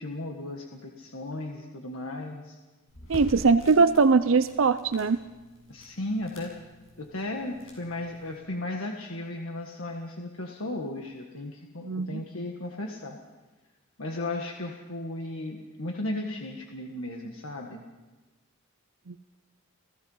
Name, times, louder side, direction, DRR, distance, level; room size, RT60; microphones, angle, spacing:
voice 1, 0.0-2.6 5.7-6.5 7.0-13.2 14.0-17.8, left 1 dB, 85° left, 2 dB, 1.6 m, -35 dB
sound 1, 2.9-8.4, equal, 70° left, 7.1 m, -46 dB
voice 2, 3.1-5.2 11.8-12.2 19.1-19.2, right 4 dB, 70° right, 12 dB, 0.6 m, -21 dB
29.5 x 16.5 x 5.6 m, 1.2 s
head